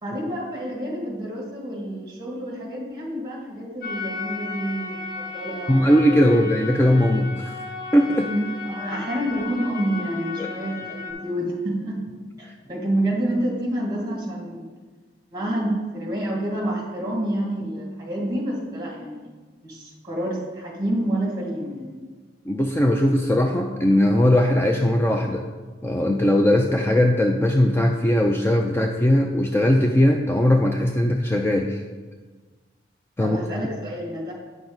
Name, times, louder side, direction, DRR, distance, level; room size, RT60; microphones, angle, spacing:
voice 1, 0.0-5.9 8.3-14.7 15.3-19.3 19.6-22.0 33.2-34.3, right 1 dB, 25° right, -2 dB, 2.2 m, -28 dB
sound 1, 3.8-11.1, left 4 dB, 55° left, 1.1 m, -34 dB
voice 2, 5.7-7.5 7.9-8.3 10.4-10.5 22.5-25.4 25.8-31.8 33.2-33.4, left 1 dB, 15° left, 2 dB, 0.4 m, -19 dB
9.3 x 5.9 x 4.0 m, 1.4 s
head